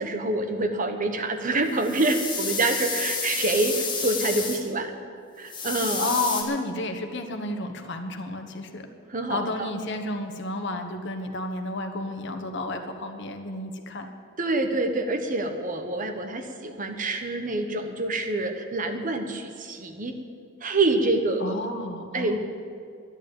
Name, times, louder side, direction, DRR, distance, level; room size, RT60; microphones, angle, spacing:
voice 1, 0.0-5.0 5.4-6.1 9.1-9.7 14.4-20.2 20.6-21.6 22.1-22.4, right 2 dB, 40° right, 5 dB, 1.2 m, -26 dB
sound 1, 1.7-4.6 5.5-6.4, left 4 dB, 25° left, 2.0 m, -30 dB
voice 2, 6.0-8.9 9.3-14.1 21.4-22.4, left 2 dB, 60° left, 5 dB, 1.3 m, -31 dB
11.5 x 11.0 x 8.8 m, 2.3 s
head